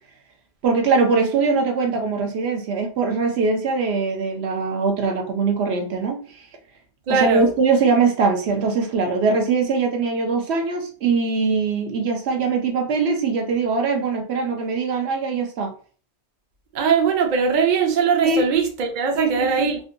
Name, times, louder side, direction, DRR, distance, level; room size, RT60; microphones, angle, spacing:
voice 1, 0.6-6.2 7.1-15.7 18.2-18.5 19.1-19.7, right 4 dB, 75° right, 3 dB, 0.9 m, -22 dB
voice 2, 7.1-7.5 16.7-19.8, right 6 dB, 55° right, 3 dB, 0.6 m, -20 dB
3.7 x 2.2 x 2.6 m, 0.41 s
omnidirectional pair, 1.1 m